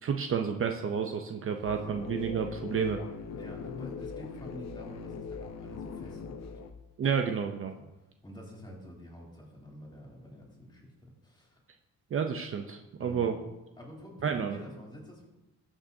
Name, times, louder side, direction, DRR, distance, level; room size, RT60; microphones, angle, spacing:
voice 1, 0.0-3.0 7.0-7.7 12.1-13.4 14.2-14.6, right 7 dB, 45° right, 4 dB, 0.7 m, -30 dB
sound 1, 1.7-6.7, left 5 dB, 60° left, 0.8 m, -41 dB
voice 2, 3.4-6.6 7.7-7.9 8.2-10.9 11.2-11.6 13.0-13.3 13.8-15.3, equal, 15° left, -3 dB, 3.1 m, -48 dB
14.0 x 6.2 x 2.8 m, 1.0 s
cardioid pair, 90°, 30 cm